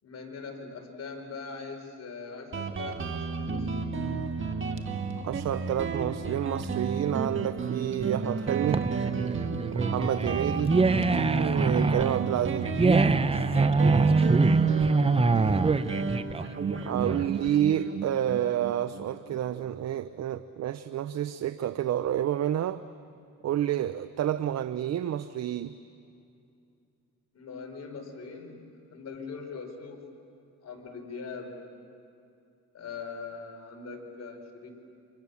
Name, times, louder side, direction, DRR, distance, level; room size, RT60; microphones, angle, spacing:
voice 1, 0.0-4.1 10.5-10.7 13.8-14.4 27.3-28.6 28.9-30.0 30.6-31.6 32.7-34.7, left 4 dB, 55° left, 2 dB, 5.1 m, -41 dB
Guitar, 2.5-19.7, right 4 dB, 40° right, 1.8 m, -32 dB
voice 2, 5.2-8.9 9.7-10.8 11.4-12.8 16.8-22.8 23.4-25.8, right 11 dB, 60° right, 13 dB, 0.7 m, -29 dB
sound 1, 8.5-17.5, right 4 dB, 20° right, 0.8 m, -24 dB
29.5 x 26.0 x 7.1 m, 2.6 s
cardioid pair, 90°, 30 cm